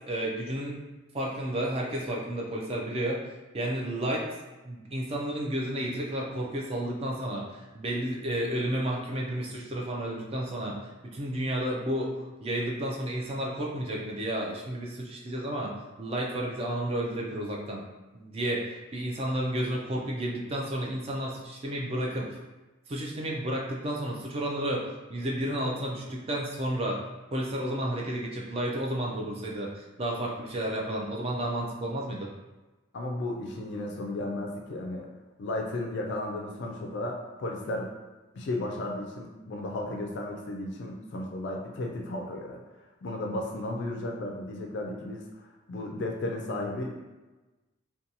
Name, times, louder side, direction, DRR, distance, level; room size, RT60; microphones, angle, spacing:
voice 1, 0.1-0.8 1.1-3.2 3.5-4.3 4.6-10.8 11.1-15.7 16.0-17.8 18.1-22.4 22.9-27.0 27.3-32.3, right 1 dB, 30° right, -2 dB, 0.3 m, -31 dB
voice 2, 32.9-35.1 35.4-37.9 38.3-42.6 43.0-47.0, left 1 dB, 55° left, 1 dB, 0.3 m, -34 dB
2.6 x 2.2 x 2.7 m, 1.2 s
head